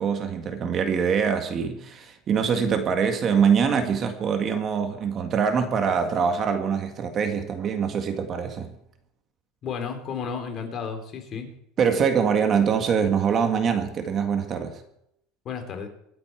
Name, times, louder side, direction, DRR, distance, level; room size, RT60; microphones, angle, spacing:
voice 1, 0.0-8.7 11.8-14.8, right 6 dB, 35° right, 1.9 m, -24 dB
voice 2, 9.6-11.5 15.4-15.9, left 6 dB, 40° left, 3.3 m, -32 dB
25.5 x 8.7 x 4.6 m
supercardioid pair, 130°, 0 cm